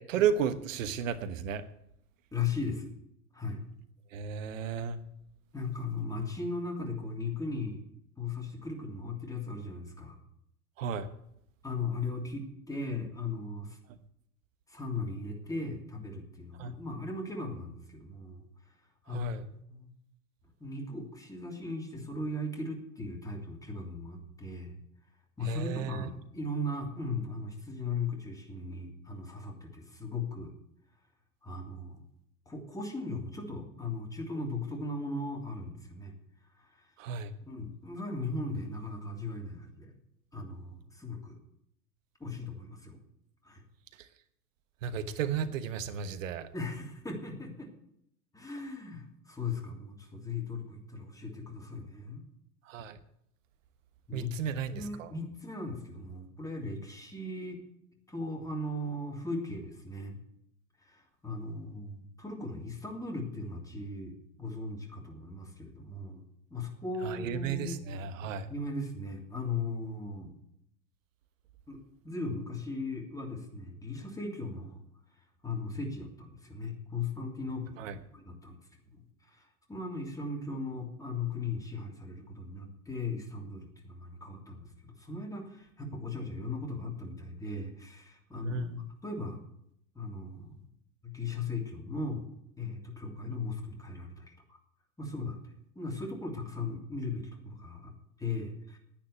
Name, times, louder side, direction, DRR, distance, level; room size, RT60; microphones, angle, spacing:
voice 1, 0.0-1.6 4.1-5.0 10.8-11.1 16.6-16.7 19.1-19.5 25.4-26.1 37.0-37.3 44.8-46.5 52.7-53.0 54.1-55.1 67.0-68.5 77.8-78.0 88.4-88.8, right 7 dB, 60° right, 11 dB, 1.2 m, -33 dB
voice 2, 2.3-2.9 3.3-3.6 5.5-7.8 8.2-10.2 11.6-13.8 14.7-18.4 19.1-19.4 19.7-19.9 20.6-24.7 25.4-30.5 31.4-32.0 32.5-36.1 36.6-36.9 37.5-39.9 40.3-41.4 42.2-43.0 43.4-43.6 46.5-47.7 48.3-52.2 54.1-54.3 54.7-57.6 58.1-60.2 60.8-66.2 66.5-67.8 68.5-70.3 71.7-71.8 72.0-74.8 75.4-78.6 78.9-79.0 79.3-89.4 89.9-90.5 91.0-92.2 92.6-94.6 95.0-98.8, left 3 dB, 10° left, 1 dB, 3.1 m, -38 dB
10.5 x 9.4 x 9.4 m, 0.76 s
figure-of-eight pair, 90°, 44 cm